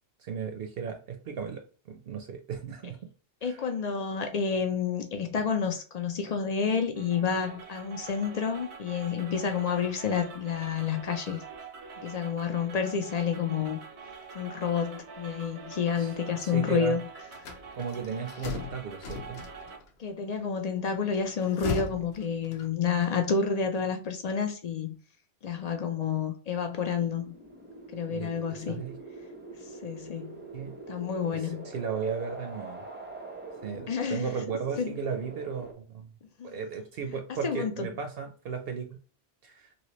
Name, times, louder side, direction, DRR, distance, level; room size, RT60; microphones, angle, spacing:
voice 1, 0.2-3.0 3.4-3.6 15.9-16.1 16.4-17.0 17.7-19.4 28.1-28.3 28.7-29.0 30.5-30.7 31.3-32.8 33.6-36.1 36.4-38.9 39.4-39.7, right 6 dB, 70° right, 0.7 m, -35 dB
voice 2, 3.4-11.4 12.0-13.8 14.3-17.0 20.0-24.9 25.4-27.3 27.9-28.8 29.8-30.4 30.9-31.7 33.9-34.3 34.8-34.9 36.4-36.5 37.1-37.9, left 6 dB, 55° left, 0.5 m, -29 dB
sound 1, 7.0-19.8, right 4 dB, 85° right, 1.0 m, -45 dB
sound 2, 17.3-19.9 21.2-23.0, left 6 dB, 75° left, 0.9 m, -38 dB
sound 3, 26.9-35.7, right 3 dB, 15° right, 0.5 m, -44 dB
3.0 x 2.8 x 3.0 m
omnidirectional pair, 1.1 m